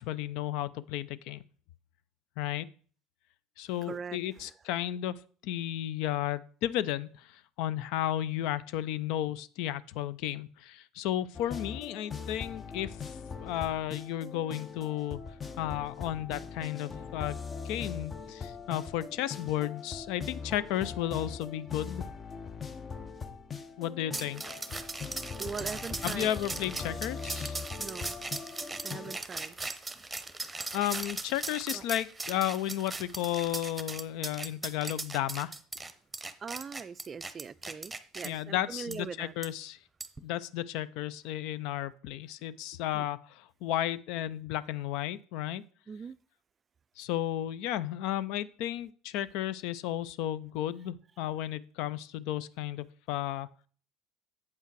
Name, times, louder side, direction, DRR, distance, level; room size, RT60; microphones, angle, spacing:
voice 1, 0.0-1.4 2.4-2.7 3.6-13.1 13.4-15.2 15.6-22.1 23.8-24.8 26.0-27.6 30.7-35.6 38.2-39.8 40.2-45.6 47.0-53.5, left 12 dB, 70° left, 0.4 m, -33 dB
voice 2, 3.8-4.5 25.3-26.3 26.9-27.0 27.7-30.7 31.7-31.9 36.4-39.3 42.9-43.1 45.9-46.2, right 6 dB, 35° right, 0.3 m, -42 dB
sound 1, 11.3-29.2, left 5 dB, 30° left, 0.8 m, -41 dB
sound 2, 24.1-38.3 38.9-39.0 39.4-39.5 40.0-40.2, right 3 dB, 15° right, 0.9 m, -39 dB
8.1 x 5.6 x 4.6 m
hypercardioid pair, 75°, 0 cm